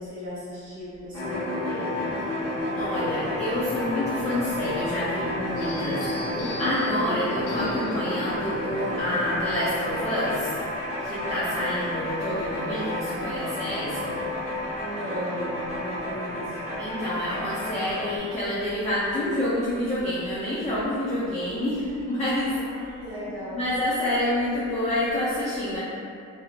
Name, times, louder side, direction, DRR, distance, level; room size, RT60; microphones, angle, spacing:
voice 1, 0.0-2.1 6.7-7.2 14.7-16.7 21.9-22.0 22.5-23.6, equal, 35° right, -12 dB, 1.3 m, -36 dB
sound 1, 1.1-18.2, left 1 dB, 50° left, 1.0 m, -31 dB
voice 2, 2.8-6.1 6.3-10.5 11.0-14.2 16.8-22.5 22.8-22.9 23.3-25.8, left 1 dB, 25° left, -9 dB, 0.6 m, -28 dB
sound 2, 5.6-10.8, left 1 dB, 85° left, 0.5 m, -41 dB
2.8 x 2.7 x 2.4 m, 2.4 s
cardioid pair, 90°, 30 cm